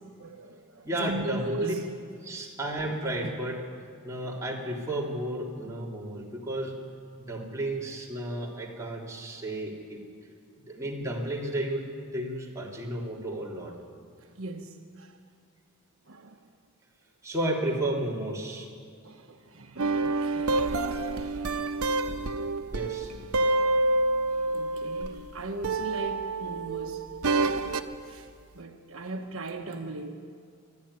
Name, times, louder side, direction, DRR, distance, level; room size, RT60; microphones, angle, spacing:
voice 1, 0.2-1.8 3.2-3.3 14.4-15.1 16.1-16.4 19.0-21.7 24.2-27.0 27.4-27.6 28.0-28.3 28.5-30.1, right 2 dB, 65° right, 4 dB, 1.2 m, -38 dB
voice 2, 0.8-1.7 2.2-3.6 4.0-6.8 7.2-10.0 10.7-11.9 12.1-13.7 17.2-18.7 22.7-23.1, right 1 dB, 15° right, -3 dB, 3.2 m, -32 dB
sound 1, 19.8-25.3 25.6-27.9, right 2 dB, 85° right, 0.9 m, -28 dB
24.5 x 12.0 x 10.0 m, 2.3 s
head